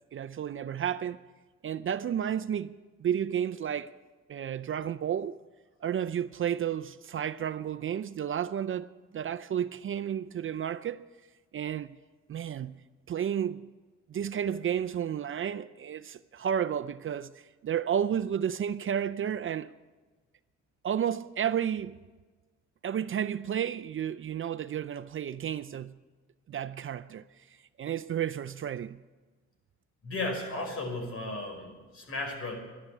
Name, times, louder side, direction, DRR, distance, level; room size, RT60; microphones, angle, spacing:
voice 1, 0.1-1.2 1.6-3.9 4.3-5.4 5.8-11.1 11.5-12.0 12.3-13.7 14.1-19.7 20.8-22.0 22.8-26.0 26.5-27.2 27.8-29.0, right 9 dB, 45° right, 0.5 m, -32 dB
voice 2, 30.0-32.6, left 2 dB, 45° left, 5.5 m, -35 dB
13.0 x 11.5 x 8.3 m
cardioid pair, 90°, 30 cm